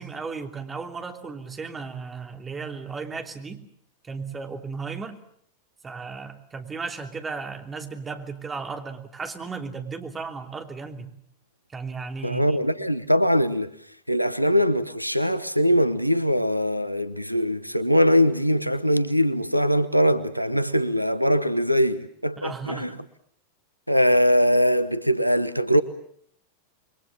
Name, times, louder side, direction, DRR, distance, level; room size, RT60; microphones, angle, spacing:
voice 1, 0.0-3.6 4.0-5.2 5.8-11.1 11.7-12.6 22.4-23.0, right 4 dB, 15° right, 3.1 m, -35 dB
voice 2, 12.2-13.7 14.1-22.9 23.9-25.8, equal, 90° right, 1.0 m, -22 dB
27.5 x 23.0 x 7.3 m
figure-of-eight pair, 90°, 0 cm